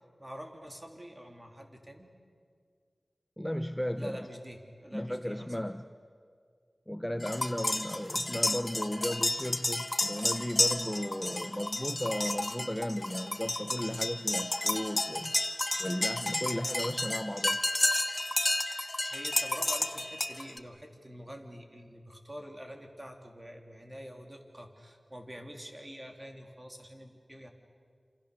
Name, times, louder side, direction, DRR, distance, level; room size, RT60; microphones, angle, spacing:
voice 1, 0.2-2.1 4.0-5.5 18.8-27.5, equal, 25° right, 3 dB, 3.2 m, -46 dB
voice 2, 3.4-4.2 4.9-5.8 6.9-15.4 15.8-17.6, equal, 10° left, 9 dB, 0.7 m, -35 dB
sound 1, 7.2-20.6, left 1 dB, 30° left, 1.1 m, -31 dB
27.5 x 27.0 x 6.8 m, 2.1 s
wide cardioid pair, 65°, 0 cm